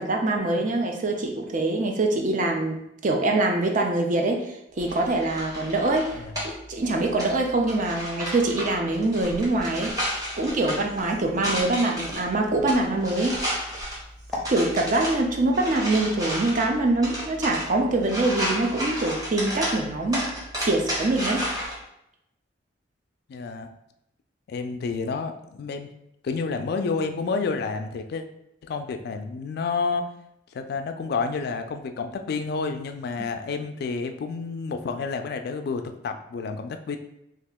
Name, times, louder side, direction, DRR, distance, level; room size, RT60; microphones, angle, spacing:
voice 1, 0.0-2.8 3.0-4.4 4.8-13.6 14.5-20.3 20.6-21.5, right 2 dB, 45° right, 2 dB, 0.5 m, -24 dB
sound 1, 4.8-21.7, equal, 20° right, 1.0 m, -33 dB
voice 2, 6.1-6.5 23.3-23.7 24.5-25.9 26.2-28.2 28.6-30.1 30.5-37.0, left 4 dB, 60° left, 7 dB, 0.3 m, -30 dB
Walk footsteps, 9.2-14.5, left 1 dB, ahead, 0.7 m, -40 dB
2.8 x 2.4 x 3.5 m, 0.82 s
head